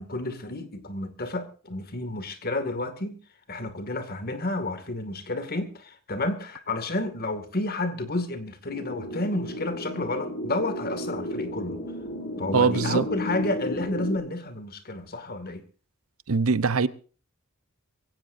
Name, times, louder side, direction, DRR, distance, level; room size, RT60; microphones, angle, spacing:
voice 1, 0.0-3.2 3.5-11.8 12.4-15.6, left 2 dB, 45° left, 2.2 m, -31 dB
sound 1, 8.7-14.2, left 1 dB, 60° left, 5.7 m, -33 dB
voice 2, 12.5-13.0 16.3-16.9, right 4 dB, 80° right, 0.9 m, -22 dB
23.5 x 16.5 x 2.7 m
head